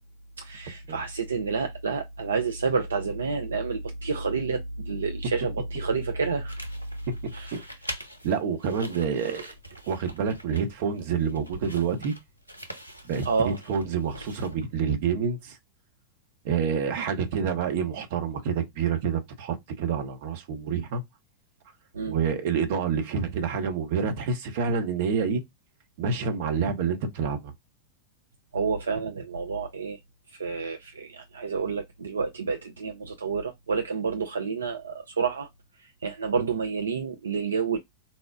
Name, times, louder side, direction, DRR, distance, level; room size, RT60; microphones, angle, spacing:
voice 1, 0.4-6.6 7.3-7.7 13.3-13.6 21.9-22.2 28.5-30.0 30.3-35.5 35.8-37.8, right 5 dB, 70° right, 0.3 m, -29 dB
sound 1, 6.5-14.8, right 1 dB, 90° left, 0.5 m, -43 dB
voice 2, 7.1-7.6 8.2-9.5 9.8-12.1 13.1-15.6 16.4-21.0 22.1-25.4 26.0-27.5, right 6 dB, 50° right, 0.7 m, -28 dB
4.1 x 2.0 x 2.3 m
figure-of-eight pair, 90°, 0 cm